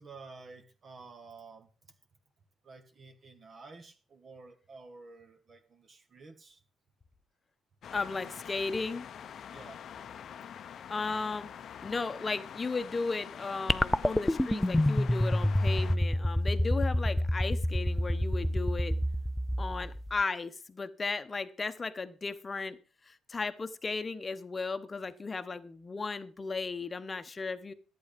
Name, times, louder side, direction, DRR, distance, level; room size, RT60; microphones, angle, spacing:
voice 1, 0.0-1.7 2.6-6.6 9.5-9.8, right 3 dB, 40° right, 1.6 m, -51 dB
sound 1, 7.8-16.0, left 8 dB, 55° left, 0.7 m, -45 dB
voice 2, 7.9-9.1 10.9-11.5 11.8-19.0 19.6-22.8 23.1-27.7, left 4 dB, 25° left, 1.0 m, -35 dB
sound 2, 13.7-20.2, left 1 dB, 5° left, 0.5 m, -28 dB
11.5 x 8.7 x 5.2 m
cardioid pair, 105°, 0 cm